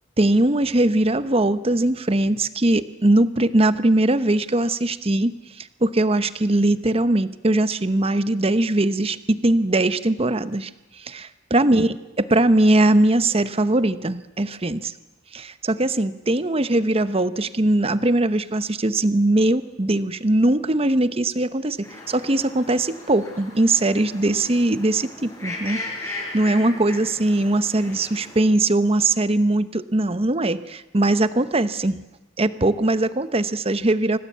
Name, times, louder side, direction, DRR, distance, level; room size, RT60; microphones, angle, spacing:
voice 1, 0.2-10.7 11.0-14.9 15.3-25.8 26.3-32.0 32.4-34.2, right 2 dB, 30° right, 13 dB, 1.0 m, -21 dB
sound 1, 21.8-28.4, left 2 dB, 15° left, 5.4 m, -37 dB
26.5 x 18.5 x 8.4 m, 1.0 s
head